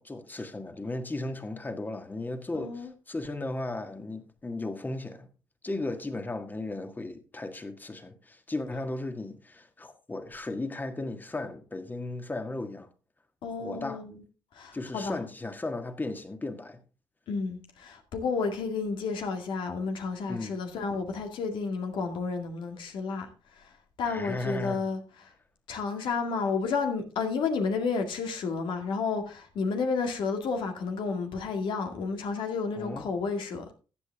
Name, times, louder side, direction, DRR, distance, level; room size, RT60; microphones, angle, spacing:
voice 1, 0.0-5.3 5.6-12.9 13.6-14.0 14.7-16.8 20.3-20.6 24.0-24.9 32.8-33.1, left 2 dB, 20° left, 1.8 m, -36 dB
voice 2, 2.5-2.9 13.4-14.2 14.5-15.2 17.3-23.3 23.6-23.7 24.0-25.3 25.7-33.6, left 4 dB, 75° left, 2.2 m, -31 dB
14.0 x 8.3 x 3.6 m
cardioid pair, 70°, 8 cm